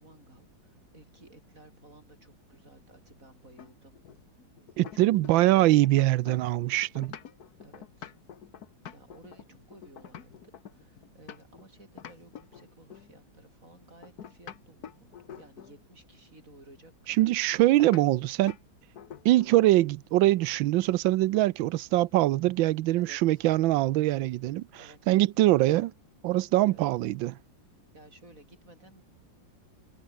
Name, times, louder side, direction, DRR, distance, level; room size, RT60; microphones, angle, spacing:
voice 1, 0.0-4.0 4.9-5.8 7.6-8.1 8.9-17.3 23.0-23.4 24.7-25.0 26.7-26.9 27.9-29.0, right 2 dB, 40° right, 7.7 m, -55 dB
sound 1, 3.6-5.6 5.8-11.7 12.0-13.1 14.0-15.8 17.8-18.1 18.5-18.7 19.0-19.6, left 9 dB, 55° left, 1.6 m, -46 dB
voice 2, 4.8-7.1 17.2-18.5 19.2-24.6 25.1-25.9 26.2-27.4, right 16 dB, 80° right, 1.3 m, -23 dB
omnidirectional pair, 2.1 m